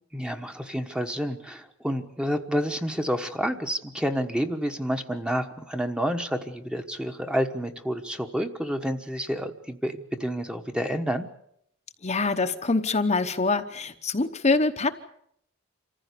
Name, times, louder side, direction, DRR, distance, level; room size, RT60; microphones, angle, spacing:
voice 1, 0.1-11.3, equal, 5° right, 6 dB, 1.2 m, -29 dB
voice 2, 12.0-14.9, left 3 dB, 30° left, 6 dB, 1.0 m, -24 dB
26.5 x 15.0 x 8.4 m, 0.74 s
head